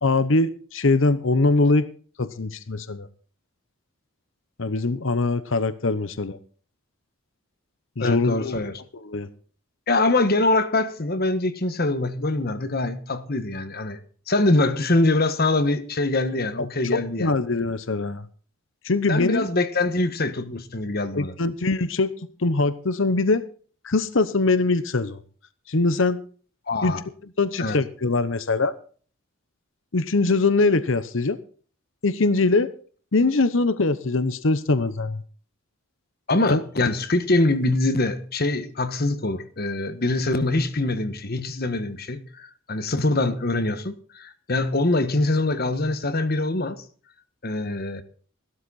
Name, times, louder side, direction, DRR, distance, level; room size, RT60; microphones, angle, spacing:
voice 1, 0.0-1.9 2.2-3.1 4.6-6.4 8.0-8.6 9.1-9.3 16.9-18.2 18.8-19.4 21.2-22.1 22.4-23.4 23.8-25.2 25.7-26.2 26.8-26.9 27.4-28.7 29.9-31.4 32.0-32.7 33.1-35.2 36.5-36.6, left 3 dB, 65° left, 0.9 m, -22 dB
voice 2, 8.0-8.8 9.9-14.0 14.3-17.3 19.1-21.3 26.7-27.0 27.6-27.8 36.3-46.8 47.4-48.0, left 2 dB, 45° left, 1.3 m, -24 dB
16.0 x 12.5 x 4.2 m
head